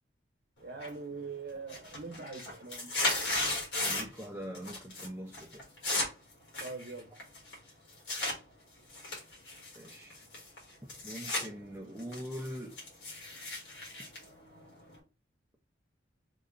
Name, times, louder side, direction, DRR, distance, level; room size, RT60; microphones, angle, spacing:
voice 1, 0.6-2.9 3.2-3.3 6.6-7.1, right 4 dB, 55° right, 0.8 m, -42 dB
sound 1, 0.8-1.2 1.5-4.2 4.5-5.1 5.3-8.4 8.9-11.5 11.8-15.0, left 2 dB, 75° left, 1.4 m, -36 dB
voice 2, 3.8-5.6 9.8-10.2 11.0-12.7, equal, 10° right, 0.5 m, -42 dB
3.7 x 2.2 x 3.7 m
head